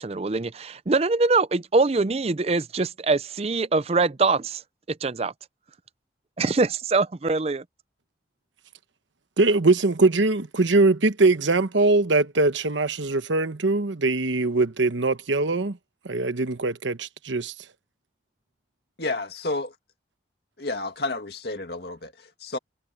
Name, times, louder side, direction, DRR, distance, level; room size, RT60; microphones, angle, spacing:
voice 1, 0.0-4.6 4.9-5.3 6.4-7.6, right 3 dB, 30° right, 0.5 m, -23 dB
voice 2, 9.4-15.8 16.0-17.7, right 3 dB, 80° right, 1.1 m, -22 dB
voice 3, 19.0-19.7 20.6-22.6, left 2 dB, 55° left, 2.1 m, -31 dB
head